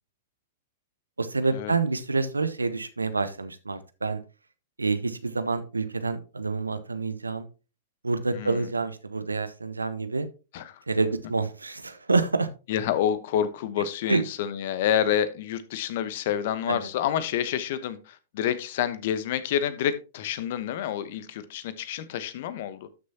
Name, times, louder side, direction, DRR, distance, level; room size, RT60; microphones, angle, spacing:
voice 1, 1.2-4.2 4.8-7.5 8.0-10.3 10.9-12.5 14.1-14.2 16.7-16.9, right 3 dB, 85° right, 0.9 m, -27 dB
voice 2, 8.3-8.7 10.5-10.8 12.7-22.9, left 10 dB, 55° left, 1.0 m, -28 dB
12.5 x 6.3 x 2.8 m
figure-of-eight pair, 105°, 0 cm